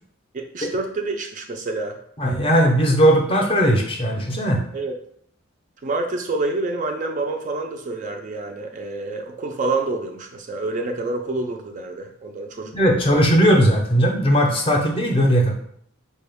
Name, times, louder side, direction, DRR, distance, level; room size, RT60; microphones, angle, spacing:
voice 1, 0.3-2.0 4.7-4.9 5.8-13.2 14.7-14.8, right 2 dB, 35° right, 3 dB, 0.3 m, -28 dB
voice 2, 2.2-4.6 12.7-15.5, equal, 25° left, 1 dB, 0.5 m, -18 dB
4.5 x 2.2 x 3.4 m, 0.67 s
head